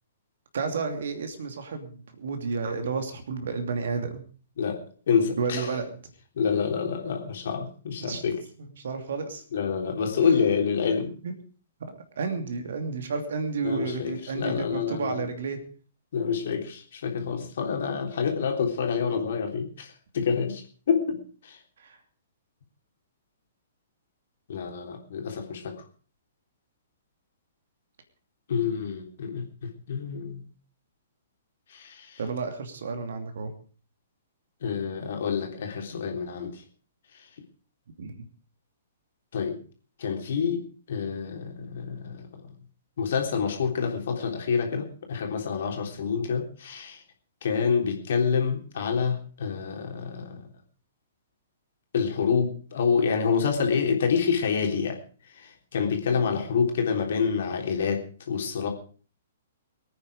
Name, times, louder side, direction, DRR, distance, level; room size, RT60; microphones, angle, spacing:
voice 1, 0.5-4.2 5.4-6.0 8.0-8.2 8.6-9.4 11.2-11.3 11.8-15.6 21.8-22.0 32.2-33.5 38.0-38.3, right 4 dB, 55° right, 7 dB, 2.7 m, -31 dB
voice 2, 5.1-5.7 6.4-8.4 9.5-11.1 13.6-15.2 16.1-21.6 24.5-25.8 28.5-30.4 31.7-32.2 34.6-36.6 39.3-39.6 40.0-42.3 43.0-47.0 47.4-50.5 51.9-55.0 55.3-58.7, left 6 dB, 55° left, 2 dB, 3.6 m, -27 dB
23.0 x 9.4 x 5.0 m, 0.41 s
figure-of-eight pair, 115°, 0 cm